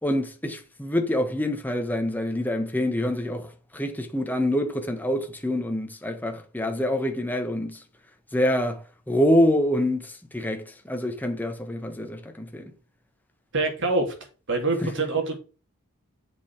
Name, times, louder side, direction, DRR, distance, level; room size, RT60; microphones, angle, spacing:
voice 1, 0.0-7.8 8.3-12.7 14.8-14.9, left 1 dB, 10° left, 1.4 m, -26 dB
voice 2, 13.5-14.1 14.5-15.4, right 3 dB, 60° right, 3.2 m, -25 dB
7.5 x 5.6 x 5.8 m
head